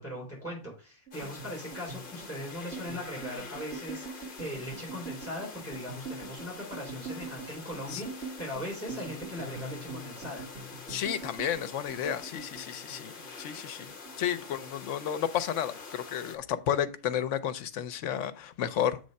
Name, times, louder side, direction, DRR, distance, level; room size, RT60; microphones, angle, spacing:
voice 1, 0.0-10.4 14.5-14.6, equal, 10° left, -4 dB, 3.6 m, -39 dB
sound 1, 1.1-16.4, left 4 dB, 45° left, 1.0 m, -46 dB
sound 2, 1.1-13.6 13.9-14.9 15.2-15.6 15.9-16.6, right 4 dB, 70° right, 1.7 m, -44 dB
voice 2, 10.9-13.9 14.2-19.0, left 9 dB, 75° left, 13 dB, 1.0 m, -32 dB
7.4 x 3.4 x 5.2 m, 0.35 s
omnidirectional pair, 1.3 m